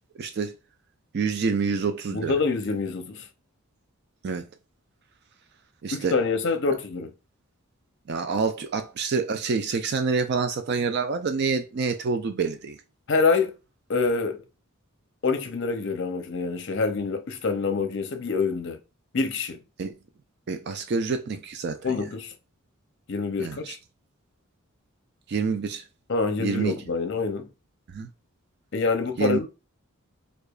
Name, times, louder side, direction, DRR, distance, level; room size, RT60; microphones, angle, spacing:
voice 1, 0.2-0.5 1.1-2.3 4.2-4.5 5.8-6.1 8.1-12.8 19.8-19.9 20.5-22.0 23.4-23.7 25.3-25.8 26.4-26.7 27.9-28.1 29.2-29.4, right 5 dB, 50° right, 0.3 m, -27 dB
voice 2, 2.1-3.3 5.9-7.1 13.1-13.5 13.9-14.4 15.2-18.8 19.1-19.6 21.8-22.3 23.1-23.8 26.1-27.5 28.7-29.5, left 4 dB, 55° left, 0.6 m, -26 dB
4.7 x 2.3 x 2.4 m
head